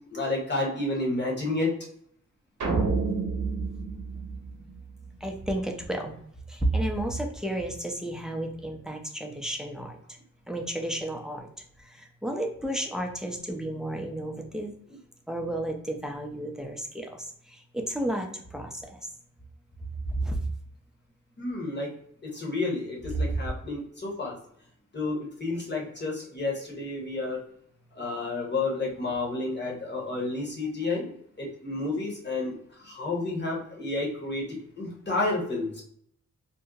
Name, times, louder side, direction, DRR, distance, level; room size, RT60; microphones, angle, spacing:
voice 1, 0.1-1.7 21.4-21.9 22.2-24.3 24.9-27.4 27.9-31.1 31.4-32.5 32.8-34.4 34.8-35.8, left 2 dB, 35° left, -2 dB, 1.2 m, -30 dB
sound 1, 2.6-5.1, right 4 dB, 65° right, 0.7 m, -29 dB
voice 2, 5.2-6.1 6.5-10.0 10.5-11.5 11.8-14.7 15.3-19.0 20.2-20.4 23.1-23.3, right 1 dB, ahead, 2 dB, 0.5 m, -32 dB
2.7 x 2.0 x 3.7 m, 0.66 s
wide cardioid pair, 100°, 32 cm